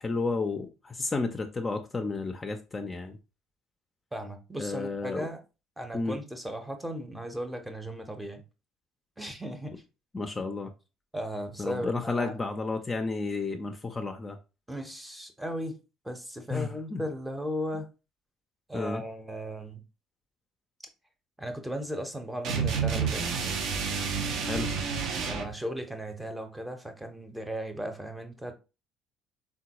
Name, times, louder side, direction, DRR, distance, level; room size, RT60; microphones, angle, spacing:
voice 1, 0.0-3.2 4.6-5.3 5.9-6.2 10.1-10.7 11.6-14.4 16.5-17.0 18.7-19.0 24.5-24.7, left 3 dB, 30° left, 0.4 m, -32 dB
voice 2, 4.1-5.4 5.8-8.4 9.2-9.8 11.1-12.4 14.7-15.8 16.0-17.9 18.7-19.8 21.4-23.3 25.3-28.5, equal, 10° right, 0.7 m, -36 dB
sound 1, 22.4-25.5, right 6 dB, 65° right, 0.6 m, -29 dB
3.7 x 2.2 x 2.8 m
hypercardioid pair, 60°, 0 cm